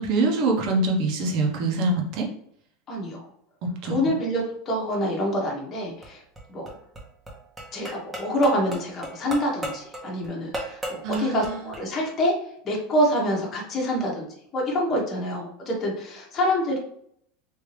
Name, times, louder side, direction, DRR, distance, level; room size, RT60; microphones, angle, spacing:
voice 1, 0.0-2.3 3.6-4.1 11.0-11.7, right 2 dB, 55° right, 0 dB, 1.0 m, -25 dB
voice 2, 2.9-3.2 3.8-6.2 6.5-6.7 7.7-12.3 12.6-16.8, equal, 30° left, -1 dB, 1.1 m, -26 dB
sound 1, 6.0-11.8, right 1 dB, 15° right, 0.9 m, -36 dB
3.4 x 2.8 x 3.1 m, 0.68 s
supercardioid pair, 135°, 0 cm